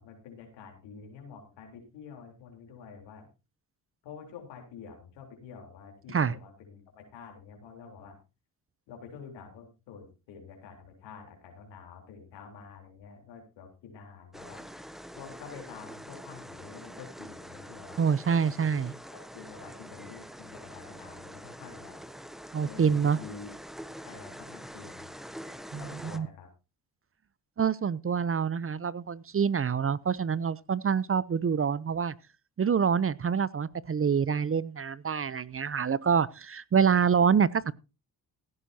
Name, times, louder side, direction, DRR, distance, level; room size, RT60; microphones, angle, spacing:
voice 1, 0.0-3.3 4.0-8.2 8.9-14.7 15.1-18.1 19.1-22.0 22.6-23.5 24.0-25.1 25.7-26.5, left 6 dB, 85° left, 3.8 m, -48 dB
sound 1, 14.3-26.2, equal, ahead, 1.1 m, -45 dB
voice 2, 18.0-18.9 22.5-23.2 25.7-25.8 26.1-26.3 27.6-32.1 32.6-37.7, right 6 dB, 30° right, 0.6 m, -26 dB
16.5 x 11.5 x 2.8 m
supercardioid pair, 55°, 42 cm